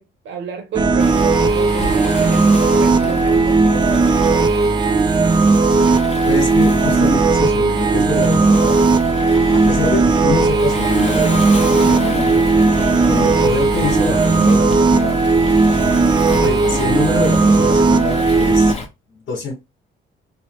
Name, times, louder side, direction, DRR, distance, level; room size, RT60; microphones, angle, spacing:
voice 1, 0.0-4.5 9.6-9.9, right 6 dB, 75° right, 0.8 m, -31 dB
sound 1, 0.7-18.7, right 3 dB, 25° right, 0.4 m, -15 dB
Waves surf, 1.0-18.9, left 3 dB, 30° left, 0.9 m, -29 dB
voice 2, 6.3-8.7 9.6-12.3 13.1-15.2 16.4-18.7 19.3-19.5, left 4 dB, 65° left, 1.4 m, -24 dB
3.2 x 2.0 x 3.1 m
cardioid pair, 90°, 20 cm